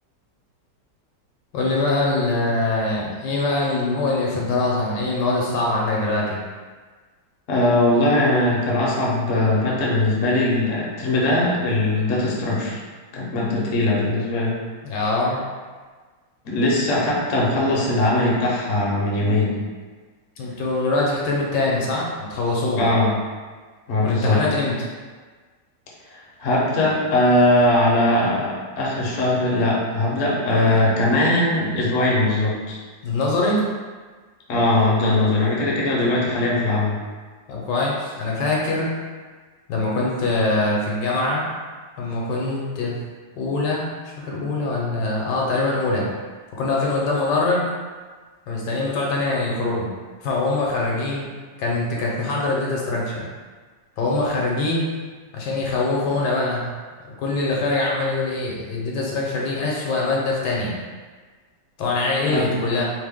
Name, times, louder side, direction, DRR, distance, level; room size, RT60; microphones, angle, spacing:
voice 1, 1.5-6.4 14.8-15.4 20.4-22.9 24.0-24.8 33.0-33.6 37.5-38.9 39.7-41.5 42.0-43.0 43.4-44.0 44.3-46.1 46.6-47.7 48.5-49.9 50.2-51.3 51.6-53.3 54.0-54.9 55.3-56.8 57.0-60.8 61.8-62.9, left 2 dB, 75° left, -3 dB, 1.2 m, -23 dB
voice 2, 7.5-12.8 13.1-14.6 16.4-19.6 22.8-23.2 23.9-24.4 26.1-32.8 34.5-37.0 62.2-62.6, left 1 dB, 60° left, -5 dB, 0.9 m, -20 dB
3.0 x 2.1 x 3.4 m, 1.4 s
omnidirectional pair, 1.9 m